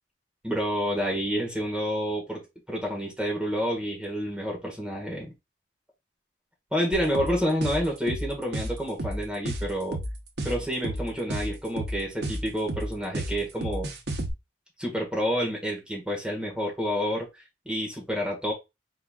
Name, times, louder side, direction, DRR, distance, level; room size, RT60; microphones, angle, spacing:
voice 1, 0.4-2.4 2.7-5.3 6.7-10.0 10.4-13.9 14.8-18.5, equal, 5° right, 1.6 m, -29 dB
sound 1, 6.9-14.3, right 1 dB, 65° right, 1.0 m, -32 dB
4.5 x 4.0 x 2.4 m
head